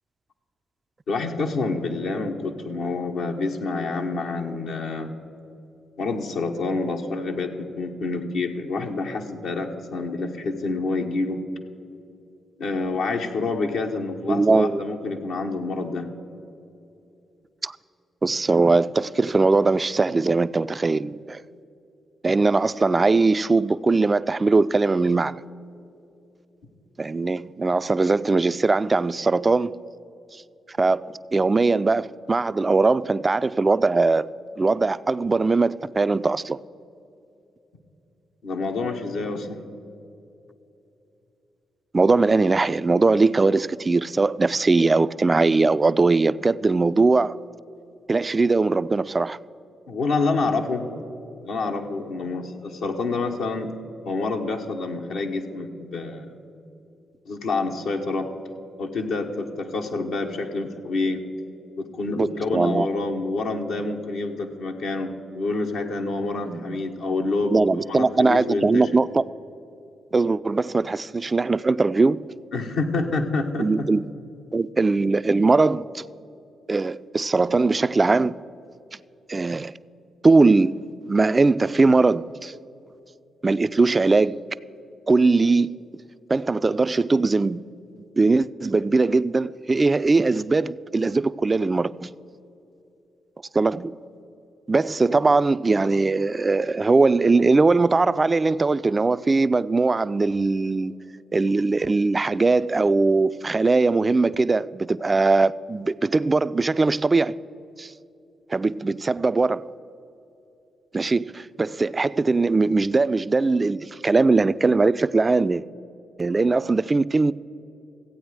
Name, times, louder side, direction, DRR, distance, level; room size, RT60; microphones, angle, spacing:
voice 1, 1.1-5.1 6.0-11.4 12.6-16.1 38.4-39.7 49.9-50.9 51.4-53.7 54.0-56.3 57.3-58.3 58.8-61.2 61.8-67.6 67.9-69.0 72.5-73.9, left 3 dB, 75° left, 1.0 m, -27 dB
voice 2, 14.3-14.8 17.6-17.8 18.2-21.4 22.2-25.4 27.0-29.8 30.7-34.3 34.6-36.6 41.9-47.4 48.1-49.4 62.1-62.9 66.5-66.8 67.5-69.2 70.1-72.2 73.6-74.0 74.5-76.0 76.7-78.3 79.3-79.7 80.2-80.7 81.1-82.5 83.4-84.4 85.1-85.7 86.3-87.6 88.2-92.1 93.5-94.0 94.7-100.9 101.3-107.4 107.8-107.9 108.5-109.7 110.9-115.6 116.2-117.3, right 3 dB, 35° right, 0.3 m, -20 dB
14.5 x 8.7 x 4.8 m
hypercardioid pair, 40°, 0 cm